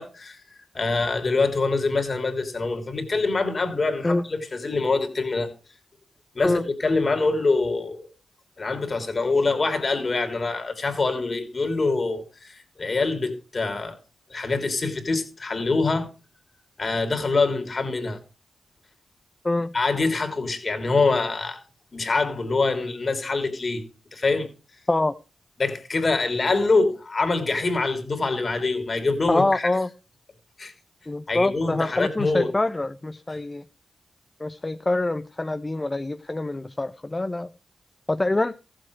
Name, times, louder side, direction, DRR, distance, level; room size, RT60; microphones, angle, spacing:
voice 1, 0.0-5.5 6.3-8.1 8.6-14.0 14.3-16.1 16.8-18.2 19.7-21.6 21.9-24.5 25.6-29.7 30.6-30.7 31.3-32.5, left 3 dB, 50° left, 3.1 m, -25 dB
voice 2, 29.3-29.9 31.1-33.6 34.4-37.5 38.1-38.5, left 2 dB, 30° left, 0.7 m, -25 dB
14.5 x 7.7 x 4.7 m
supercardioid pair, 40°, 0 cm